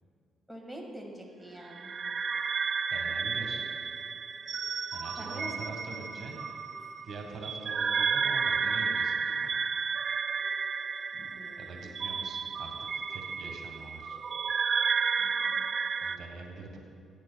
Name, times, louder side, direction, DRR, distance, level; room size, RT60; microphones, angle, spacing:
voice 1, 0.5-1.9 5.2-5.5 6.7-6.8 11.1-12.2 15.2-15.8, right 1 dB, 5° left, 0 dB, 1.7 m, -46 dB
sound 1, 1.7-16.2, right 5 dB, 45° right, 0.3 m, -32 dB
voice 2, 2.9-3.7 4.9-6.4 7.0-9.5 11.6-12.7 13.1-14.2 16.0-16.8, right 3 dB, 65° right, 2 dB, 1.3 m, -44 dB
15.5 x 9.1 x 2.2 m, 2.2 s
cardioid pair, 90°, 0 cm